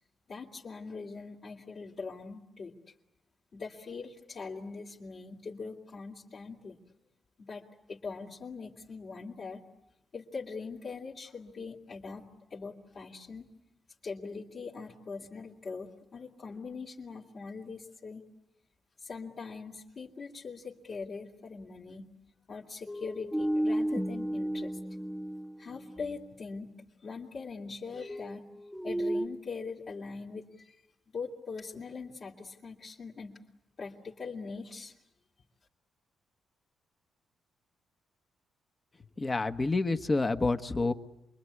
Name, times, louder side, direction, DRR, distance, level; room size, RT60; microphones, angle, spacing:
voice 1, 0.3-2.8 3.5-6.8 7.4-9.6 10.1-12.2 12.5-13.5 14.0-18.2 19.0-22.1 22.5-24.8 25.6-26.7 27.0-28.4 28.8-30.8 31.1-33.4 33.8-34.9, left 4 dB, 50° left, -5 dB, 2.8 m, -42 dB
sound 1, 22.9-26.2 27.9-29.3, right 1 dB, ahead, 1.1 m, -33 dB
voice 2, 39.2-40.9, left 3 dB, 25° left, 8 dB, 1.3 m, -28 dB
28.0 x 22.0 x 9.7 m, 0.90 s
cardioid pair, 95°, 0 cm